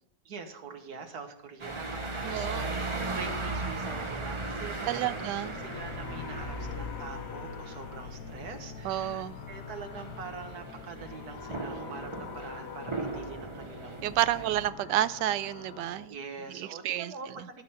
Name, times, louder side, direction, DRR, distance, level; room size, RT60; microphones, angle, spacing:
voice 1, 0.2-1.9 2.1-2.7 3.1-5.3 5.6-14.6 16.1-17.6, right 5 dB, 65° right, 7 dB, 1.6 m, -44 dB
sound 1, 1.6-14.7, right 2 dB, 25° right, 0.7 m, -38 dB
voice 2, 2.2-2.7 4.9-5.5 8.8-9.4 14.0-16.1 16.5-17.1, right 13 dB, 85° right, 15 dB, 1.2 m, -30 dB
Truck, 3.7-15.5, left 4 dB, 55° left, 1.2 m, -46 dB
sound 2, 5.4-16.1, left 6 dB, 80° left, 1.7 m, -46 dB
13.0 x 6.1 x 5.5 m, 0.71 s
omnidirectional pair, 1.8 m